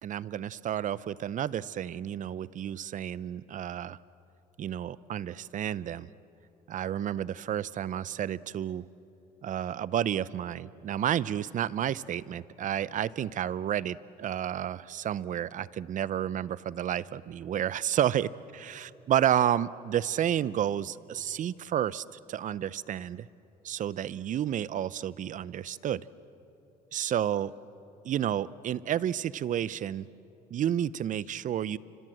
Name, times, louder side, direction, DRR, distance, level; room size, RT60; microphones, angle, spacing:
voice 1, 0.0-4.0 4.6-6.1 6.7-8.8 9.4-23.3 23.6-26.0 26.9-27.5 28.0-30.1 30.5-31.8, right 10 dB, 50° right, 19 dB, 0.6 m, -31 dB
29.5 x 25.5 x 7.7 m, 2.9 s
cardioid pair, 110°, 17 cm